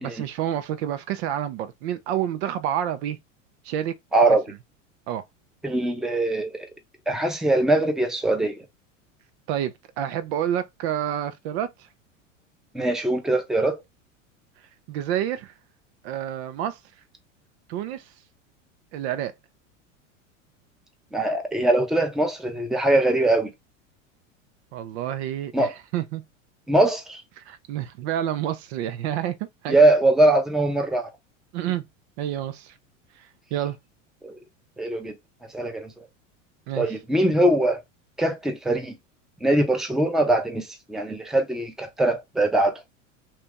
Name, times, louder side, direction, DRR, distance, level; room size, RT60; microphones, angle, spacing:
voice 1, 0.0-3.2 3.6-4.0 5.1-5.2 9.5-11.9 14.9-15.5 16.0-16.8 17.7-18.1 18.9-19.3 24.7-26.2 27.4-29.4 29.6-29.8 31.5-31.8 32.2-32.8 33.2-33.8 36.7-36.9, right 11 dB, 55° right, 0.6 m, -29 dB
voice 2, 4.1-4.5 5.6-6.7 7.1-8.7 12.7-13.8 21.1-23.5 25.5-25.7 26.7-27.2 29.7-31.1 34.2-34.4 34.8-35.2 35.5-36.0 36.7-37.8 38.2-39.0 39.4-42.8, right 2 dB, ahead, 0.7 m, -22 dB
2.9 x 2.5 x 3.5 m
hypercardioid pair, 95°, 39 cm